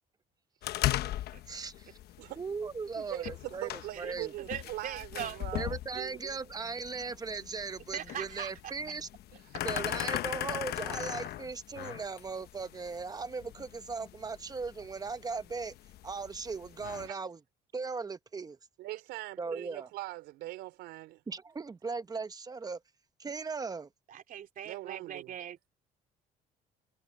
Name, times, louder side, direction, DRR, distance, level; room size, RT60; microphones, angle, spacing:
sound 1, 0.6-17.1, left 14 dB, 70° left, 1.0 m, -39 dB
voice 1, 1.5-2.0 2.4-4.3 5.5-9.1 9.6-15.7 16.0-17.4 17.7-18.6 19.4-19.9 21.3-22.8 23.2-23.9, right 4 dB, 20° right, 1.1 m, -38 dB
voice 2, 3.0-6.4 9.3-9.4 17.1-17.2 18.8-21.2 24.6-25.3, right 17 dB, 90° right, 3.7 m, -42 dB
voice 3, 4.5-5.4 7.9-8.5 24.1-25.7, right 10 dB, 55° right, 3.0 m, -40 dB
cardioid pair, 110°, 17 cm